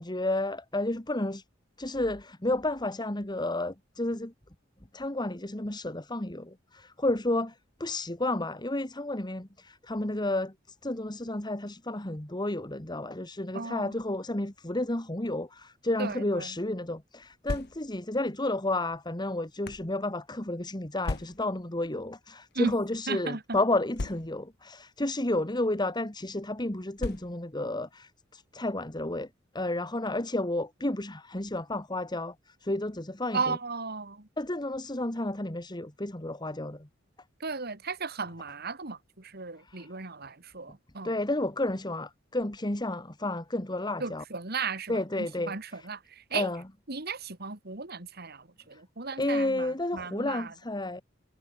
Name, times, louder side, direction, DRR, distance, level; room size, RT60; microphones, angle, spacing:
voice 1, 0.0-1.4 1.8-4.3 4.9-7.5 7.8-10.5 10.8-29.3 29.5-33.6 34.4-36.9 39.7-39.9 41.0-44.2 44.9-45.9 46.3-46.6 49.2-51.0, left 2 dB, 20° left, 2.0 m, -31 dB
voice 2, 13.5-13.9 16.0-16.5 22.5-22.7 23.1-23.6 33.3-34.3 37.4-41.1 44.0-45.0 45.5-46.5 46.9-49.7 49.9-50.5, right 4 dB, 55° right, 3.0 m, -35 dB
sound 1, 17.2-18.1 18.9-19.9 21.0-21.6 22.5-22.7 22.9-23.0 23.9-24.6 25.5-25.7 27.0-27.6, left 2 dB, 55° left, 0.9 m, -37 dB
head